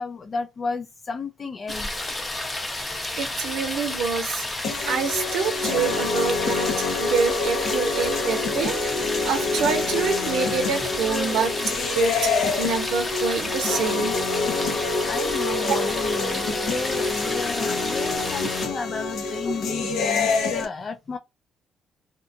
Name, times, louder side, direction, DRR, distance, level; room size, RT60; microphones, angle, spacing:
voice 1, 0.0-2.0 14.3-14.4 15.1-21.2, left 4 dB, 40° left, 0.3 m, -33 dB
sound 1, 1.7-18.7, left 2 dB, 25° left, 0.8 m, -31 dB
voice 2, 3.2-4.5 4.9-14.1 15.6-15.8, right 6 dB, 85° right, 0.6 m, -27 dB
sound 2, 4.6-20.6, left 4 dB, 80° left, 0.6 m, -26 dB
2.7 x 2.2 x 2.6 m
cardioid pair, 90°, 0 cm